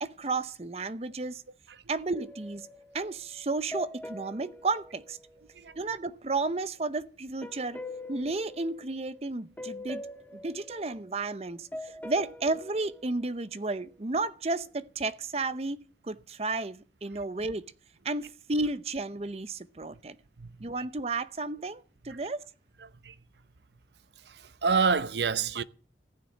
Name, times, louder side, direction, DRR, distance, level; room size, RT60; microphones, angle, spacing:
voice 1, 0.0-1.4 1.9-2.7 2.9-5.2 5.8-7.8 8.1-10.1 10.4-17.7 18.0-20.2 20.6-22.5, right 3 dB, 35° right, 0.7 m, -32 dB
sound 1, 2.1-6.0 7.4-9.3 9.6-14.1, left 2 dB, 10° left, 1.4 m, -44 dB
voice 2, 20.4-20.9 22.1-22.2 22.8-23.2 24.2-25.6, right 5 dB, 75° right, 0.7 m, -29 dB
15.0 x 6.8 x 9.9 m
head